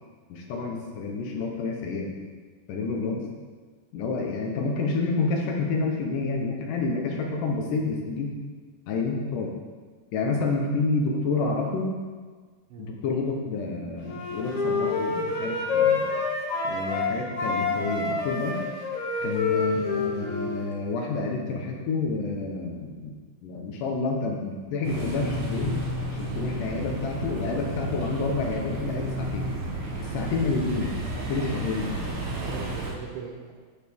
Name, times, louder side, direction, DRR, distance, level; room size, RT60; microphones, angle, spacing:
voice 1, 0.3-2.1 2.7-3.3 3.9-8.3 8.9-9.5 10.1-11.9 12.8-16.0 16.6-18.6 19.2-23.2 23.4-25.8 26.1-29.5 30.0-30.9 31.3-31.9, left 3 dB, 70° left, 0 dB, 2.1 m, -29 dB
Wind instrument woodwind instrument, 14.0-17.1 17.4-20.7, left 4 dB, 50° left, 3.0 m, -27 dB
sound 1, 24.8-32.9, right 1 dB, 70° right, 3.6 m, -32 dB
voice 2, 32.2-33.5, right 5 dB, 85° right, -5 dB, 2.9 m, -41 dB
14.0 x 4.8 x 3.6 m, 1.5 s
omnidirectional pair, 4.7 m